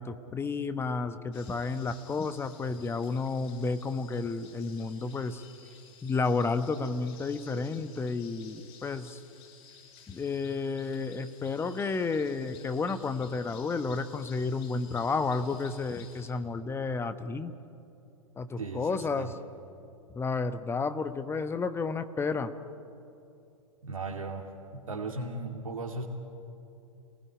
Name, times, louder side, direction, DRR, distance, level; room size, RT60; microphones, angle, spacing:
voice 1, 0.0-5.4 6.0-9.2 10.1-17.5 18.4-19.3 20.1-22.5, left 4 dB, 15° left, 11 dB, 1.0 m, -31 dB
sound 1, 1.3-16.3, left 7 dB, 50° left, 5.2 m, -55 dB
voice 2, 18.6-19.3 23.8-24.5 24.7-26.0, right 3 dB, 75° right, 0 dB, 2.6 m, -37 dB
29.5 x 19.5 x 9.9 m, 2.7 s
figure-of-eight pair, 100°, 18 cm